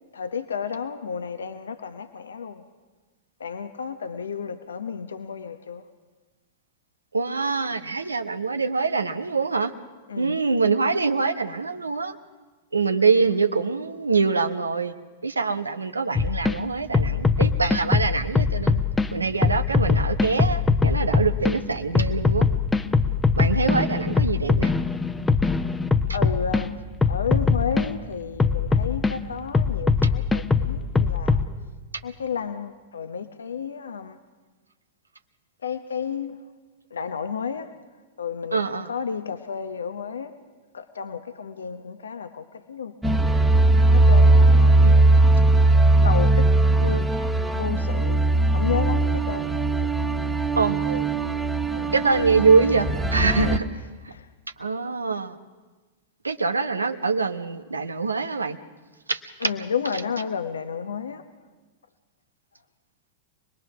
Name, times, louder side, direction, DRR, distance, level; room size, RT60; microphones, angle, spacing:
voice 1, 0.1-2.6 3.4-5.8 10.1-10.4 26.1-26.7 27.1-31.4 32.0-34.2 35.6-36.4 36.9-37.7 38.2-38.6 38.9-40.3 40.7-42.9 43.9-44.9 46.0-46.5 46.8-47.1 47.5-48.2 48.5-49.5 51.7-51.9 53.4-53.6 59.4-61.2, left 6 dB, 75° left, 10 dB, 0.9 m, -32 dB
voice 2, 7.1-9.7 10.2-12.2 12.7-14.9 15.2-18.8 19.1-22.5 23.3-24.7 26.1-26.2 38.5-38.9 44.8-45.2 50.6-51.1 51.9-53.7 54.0-54.1 54.6-55.4 56.2-58.6 59.1-59.5 59.9-60.0, right 4 dB, 85° right, 9 dB, 1.0 m, -24 dB
sound 1, 16.2-16.5 16.9-19.1 19.4-21.6 22.0-26.6 27.0-27.9 28.4-29.1 29.5-31.5, left 4 dB, 10° left, 0.9 m, -22 dB
sound 2, 43.0-53.6, right 2 dB, 5° right, 1.3 m, -19 dB
25.5 x 20.5 x 6.0 m, 1.3 s
figure-of-eight pair, 95°, 0 cm